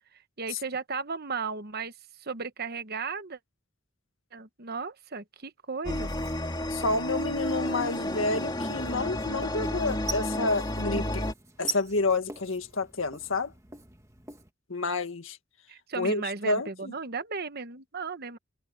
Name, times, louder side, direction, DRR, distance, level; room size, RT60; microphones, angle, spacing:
voice 1, 0.1-3.4 4.3-6.1 15.7-18.4, right 4 dB, 50° right, 1.2 m, -35 dB
sound 1, 5.8-11.3, left 1 dB, 20° left, 2.9 m, -31 dB
Writing, 6.0-14.5, right 3 dB, 15° right, 1.8 m, -43 dB
voice 2, 6.7-11.3 11.6-13.5 14.7-15.4 16.0-16.9, left 3 dB, 75° left, 1.9 m, -29 dB
head